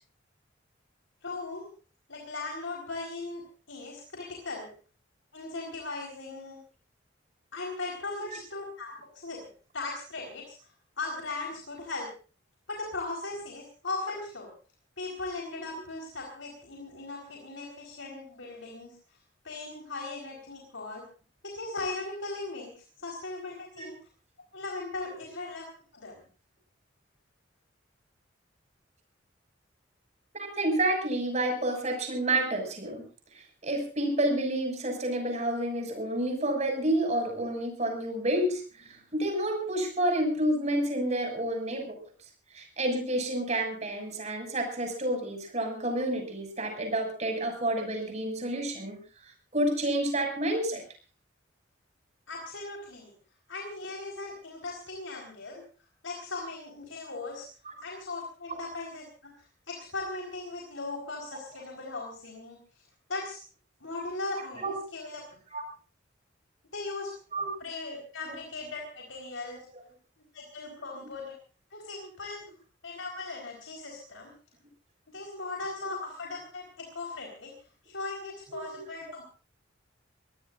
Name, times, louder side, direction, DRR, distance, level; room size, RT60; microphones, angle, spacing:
voice 1, 1.2-1.7 2.1-4.7 5.3-6.6 7.5-9.4 9.7-10.7 11.0-12.1 12.7-14.5 15.0-18.9 19.4-21.0 21.4-23.9 24.5-25.7 25.9-26.2 52.3-53.1 53.5-55.6 56.0-57.5 57.8-59.3 59.7-62.6 63.1-63.4 63.8-65.2 66.7-67.1 67.6-69.6 70.3-71.4 71.7-72.4 72.8-74.3 75.1-77.5 77.8-79.2, left 3 dB, 85° left, 0 dB, 4.5 m, -38 dB
voice 2, 30.3-33.0 33.3-42.0 42.5-48.9 49.5-50.8 64.6-64.8 65.5-65.6 67.3-67.5 75.8-75.9 78.5-78.8, right 1 dB, 35° right, 3 dB, 6.7 m, -29 dB
25.0 x 18.5 x 2.6 m, 0.38 s
head